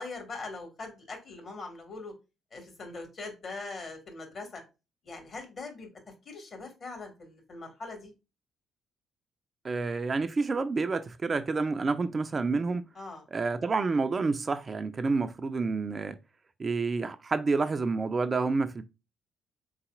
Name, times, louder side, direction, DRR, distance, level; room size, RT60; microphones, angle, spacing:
voice 1, 0.0-2.1 2.5-4.6 5.0-5.9 6.3-8.1 13.0-13.2, left 3 dB, 45° left, 1.8 m, -41 dB
voice 2, 9.6-12.9 13.3-16.2 16.6-18.8, right 4 dB, 35° right, 0.4 m, -29 dB
4.0 x 4.0 x 2.4 m
figure-of-eight pair, 45°, 0 cm